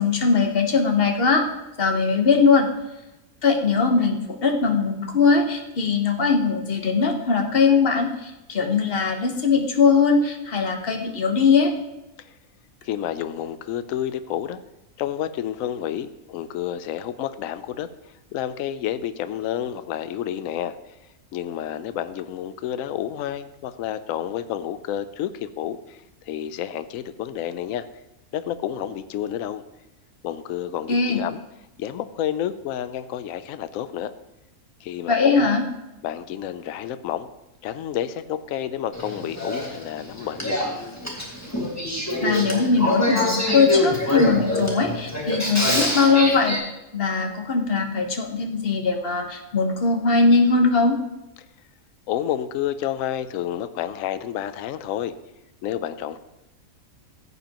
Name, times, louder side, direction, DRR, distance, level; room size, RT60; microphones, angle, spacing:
voice 1, 0.0-1.4 1.8-2.7 3.4-11.7 30.9-31.2 35.1-35.6 42.2-46.6 46.9-51.0, left 4 dB, 45° left, 4 dB, 1.2 m, -20 dB
voice 2, 12.8-14.6 15.0-17.9 18.3-20.8 21.3-26.0 26.2-27.9 28.3-29.6 30.2-31.4 31.8-34.1 34.8-35.5 36.0-37.3 37.6-40.7 52.1-55.1 55.6-56.2, left 10 dB, 70° left, 12 dB, 0.9 m, -30 dB
Male speech man speaking / Female speech woman speaking / Conversation, 38.9-46.6, left 1 dB, 10° left, 1.7 m, -25 dB
15.0 x 8.2 x 2.9 m, 0.97 s
omnidirectional pair, 1.5 m